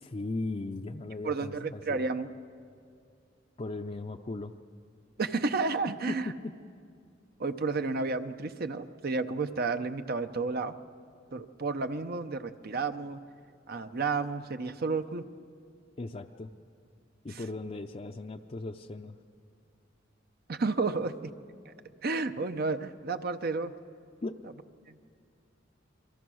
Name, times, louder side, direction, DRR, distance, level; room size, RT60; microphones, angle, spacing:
voice 1, 0.0-2.0 3.6-4.5 6.1-6.5 16.0-16.5 17.2-19.2 24.2-24.4, left 2 dB, 30° left, 3 dB, 0.5 m, -37 dB
voice 2, 1.2-2.3 5.2-6.3 7.4-10.7 11.3-13.2 13.7-15.2 17.3-17.4 20.5-21.3 21.6-21.7 22.0-23.7 24.9-25.0, right 3 dB, 50° right, 9 dB, 0.7 m, -31 dB
28.5 x 22.5 x 6.3 m, 2.3 s
head